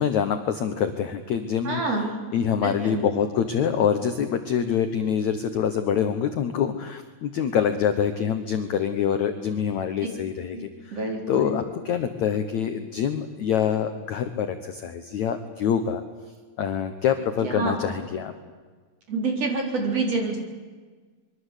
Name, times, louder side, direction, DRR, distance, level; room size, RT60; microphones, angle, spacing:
voice 1, 0.0-2.0 2.3-16.0 16.6-18.3, left 8 dB, 65° left, 8 dB, 1.9 m, -25 dB
voice 2, 1.6-2.1 2.6-3.0 10.5-10.7 10.9-11.6 17.4-17.8 19.1-20.4, right 3 dB, 40° right, 2 dB, 4.8 m, -27 dB
25.5 x 23.0 x 8.3 m, 1.5 s
omnidirectional pair, 4.7 m